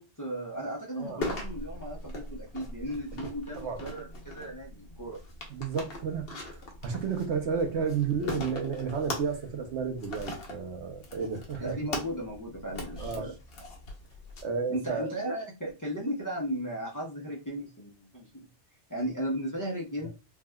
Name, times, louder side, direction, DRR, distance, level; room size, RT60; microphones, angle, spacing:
voice 1, 0.0-5.2 11.6-13.3 14.7-18.5 18.9-20.1, equal, 20° left, 0.6 m, -35 dB
sound 1, 1.2-14.4, left 2 dB, 60° left, 0.9 m, -41 dB
voice 2, 5.5-11.8 13.0-13.3 14.4-15.1 20.0-20.1, right 5 dB, 75° right, 1.0 m, -32 dB
3.4 x 2.3 x 2.2 m
omnidirectional pair, 1.2 m